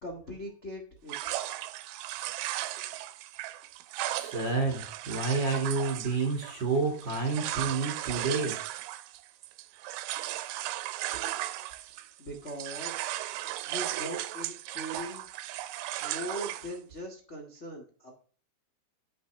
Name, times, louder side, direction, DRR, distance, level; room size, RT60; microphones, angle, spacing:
voice 1, 0.0-1.3 12.2-13.1 13.6-15.3 16.0-18.1, equal, 70° left, -1 dB, 0.6 m, -40 dB
sound 1, 1.1-12.2 12.5-16.8, right 15 dB, 80° right, 2.4 m, -36 dB
voice 2, 4.1-8.6, right 4 dB, 50° right, 1 dB, 1.4 m, -29 dB
9.4 x 7.5 x 3.3 m, 0.41 s
omnidirectional pair, 4.8 m